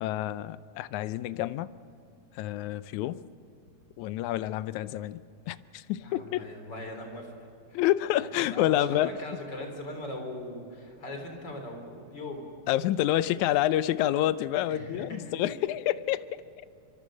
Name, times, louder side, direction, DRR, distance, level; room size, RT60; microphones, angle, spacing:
voice 1, 0.0-1.7 2.4-3.2 4.0-5.2 5.5-6.4 7.7-9.1 12.7-16.4, left 13 dB, 75° left, 15 dB, 2.0 m, -28 dB
voice 2, 6.0-7.3 7.7-7.8 8.4-12.5 14.7-15.6, left 1 dB, 35° left, 4 dB, 4.1 m, -40 dB
24.5 x 24.0 x 6.4 m, 2.6 s
omnidirectional pair, 3.6 m